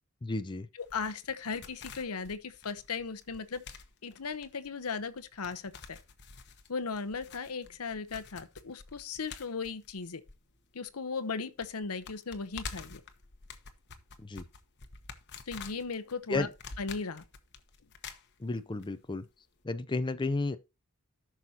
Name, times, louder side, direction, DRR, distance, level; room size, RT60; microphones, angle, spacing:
voice 1, 0.2-0.7 14.2-14.4 16.3-16.5 18.4-19.2 19.6-20.6, left 3 dB, 20° left, 0.5 m, -32 dB
voice 2, 0.8-3.6 4.0-6.0 6.7-10.2 10.7-13.0 15.5-16.5 16.8-17.2, left 5 dB, 80° left, 0.9 m, -37 dB
sound 1, 0.8-10.9 11.2-11.3 11.6-18.9 19.1-19.2, left 5 dB, 50° left, 1.1 m, -48 dB
13.5 x 6.2 x 2.8 m
head